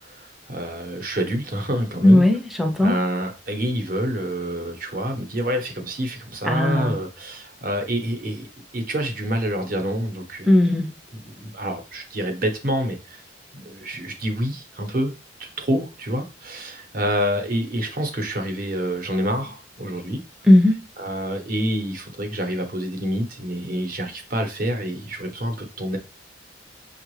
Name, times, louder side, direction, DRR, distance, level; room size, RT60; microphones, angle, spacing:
voice 1, 0.0-2.2 2.8-8.5 8.7-10.6 11.1-13.2 13.5-15.1 15.4-20.2 21.0-26.0, equal, 50° right, 0.9 m, -27 dB
voice 2, 2.0-2.9 6.4-6.9 10.5-10.9 20.5-20.8, left 1 dB, ahead, 0.6 m, -16 dB
6.0 x 2.4 x 3.1 m
head